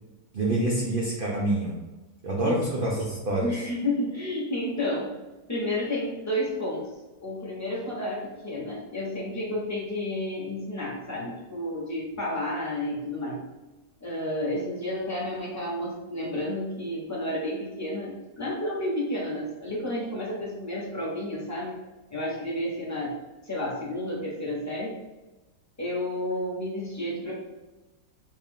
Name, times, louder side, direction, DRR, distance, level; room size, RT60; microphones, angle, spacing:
voice 1, 0.3-1.8 2.2-3.6, right 1 dB, 80° right, -3 dB, 0.4 m, -26 dB
voice 2, 3.4-5.1 5.5-6.9 7.2-13.4 14.0-21.7 22.1-23.2 23.4-25.0 25.8-27.3, left 1 dB, 15° left, -5 dB, 0.7 m, -31 dB
3.3 x 2.7 x 3.6 m, 1.1 s
omnidirectional pair, 1.8 m